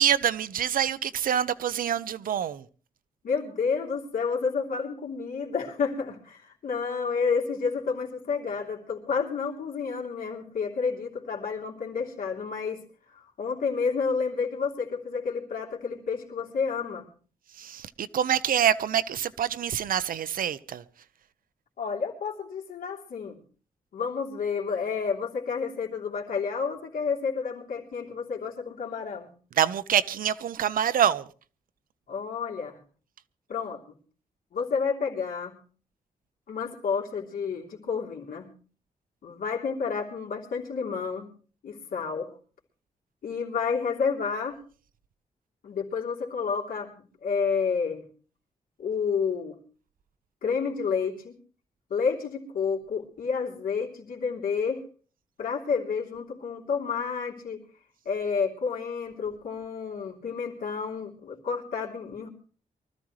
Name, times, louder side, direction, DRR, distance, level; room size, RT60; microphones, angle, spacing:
voice 1, 0.0-2.6 17.6-20.8 29.6-31.2, right 9 dB, 80° right, 0.7 m, -26 dB
voice 2, 3.2-12.8 13.1-17.1 21.8-23.4 23.9-29.3 32.1-32.8 33.5-33.8 34.5-35.5 36.5-38.5 39.2-41.3 41.6-42.3 43.2-44.6 45.6-48.0 48.8-49.5 50.4-51.4 51.9-54.8 55.4-57.6 58.0-62.3, left 5 dB, 80° left, 3.2 m, -30 dB
24.0 x 14.0 x 3.2 m
wide cardioid pair, 145°, 15 cm